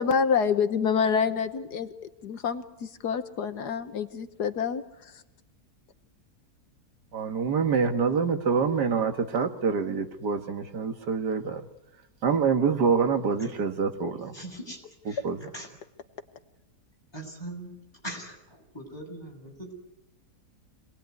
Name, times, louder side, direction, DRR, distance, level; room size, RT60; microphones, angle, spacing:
voice 1, 0.0-1.9 2.2-4.8, left 6 dB, 80° left, 1.7 m, -27 dB
voice 2, 7.1-11.6 12.2-14.3 15.2-15.4, right 5 dB, 90° right, 2.2 m, -26 dB
voice 3, 14.3-15.2 15.5-15.7 17.1-17.7 18.0-19.7, right 1 dB, 15° left, 7.6 m, -41 dB
26.5 x 19.5 x 9.6 m
omnidirectional pair, 1.7 m